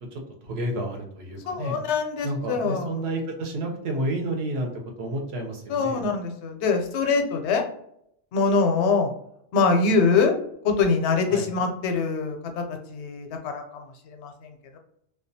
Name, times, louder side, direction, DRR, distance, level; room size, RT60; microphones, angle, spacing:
voice 1, 0.1-1.8 2.2-4.7 5.0-6.0 11.3-11.4, right 1 dB, 75° right, 2 dB, 0.9 m, -30 dB
voice 2, 1.5-3.0 5.7-7.6 8.3-9.1 9.5-10.4 10.6-14.8, left 4 dB, 90° left, 4 dB, 0.9 m, -24 dB
2.3 x 2.2 x 2.6 m, 0.72 s
omnidirectional pair, 1.1 m